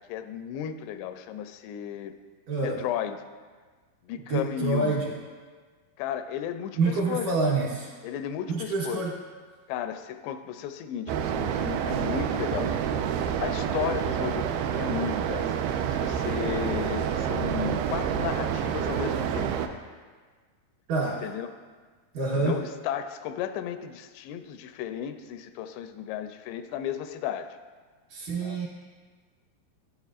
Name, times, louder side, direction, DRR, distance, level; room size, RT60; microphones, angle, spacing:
voice 1, 0.0-2.1 2.6-3.2 4.0-5.1 6.0-7.4 8.0-9.1 9.7-13.1 13.4-14.5 14.7-15.5 16.0-19.5 21.1-21.5 22.3-27.5 28.4-28.6, left 10 dB, 90° left, 9 dB, 2.7 m, -34 dB
voice 2, 2.5-2.8 4.2-5.1 6.8-7.9 8.5-9.2 20.9-21.3 22.1-22.6 28.1-28.7, right 3 dB, 70° right, -4 dB, 2.3 m, -27 dB
sound 1, 11.1-19.7, right 8 dB, 85° right, 2.1 m, -28 dB
12.5 x 9.5 x 2.4 m, 1.5 s
omnidirectional pair, 4.8 m